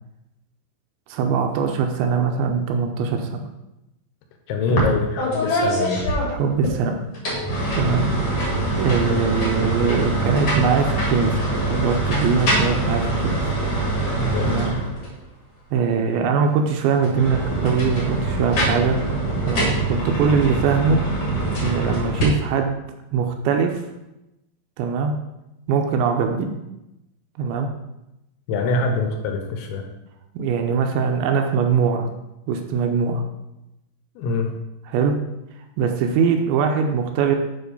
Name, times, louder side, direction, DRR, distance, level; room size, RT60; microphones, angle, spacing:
voice 1, 1.1-3.5 4.7-4.9 6.3-7.0 7.8-8.1 8.8-13.5 14.4-14.7 15.7-19.0 19.5-21.0 21.6-22.8 23.1-23.8 24.8-25.1 25.7-26.5 27.4-27.7 30.4-32.1 32.5-33.2 34.9-35.2 35.8-37.4, right 6 dB, 85° right, 4 dB, 2.8 m, -21 dB
voice 2, 4.5-6.1 7.8-8.1 14.1-14.8 28.5-29.9 34.2-34.5, left 3 dB, 80° left, 4 dB, 3.2 m, -24 dB
sound 1, 4.8-4.9 5.2-6.7 7.1-15.2 16.9-22.2, right 1 dB, 50° left, 1.8 m, -24 dB
9.3 x 3.8 x 5.3 m, 0.92 s
omnidirectional pair, 5.4 m